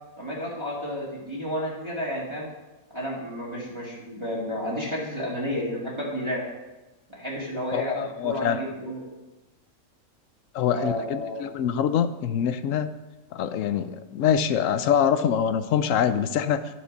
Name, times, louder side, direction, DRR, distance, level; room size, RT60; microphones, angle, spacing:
voice 1, 0.2-2.5 2.9-6.4 7.1-9.1 10.7-11.4, equal, 20° right, -6 dB, 2.0 m, -31 dB
voice 2, 7.7-8.6 10.5-12.9 13.3-16.6, left 8 dB, 70° left, 12 dB, 0.9 m, -24 dB
10.5 x 7.0 x 5.3 m, 1.1 s
omnidirectional pair, 1.6 m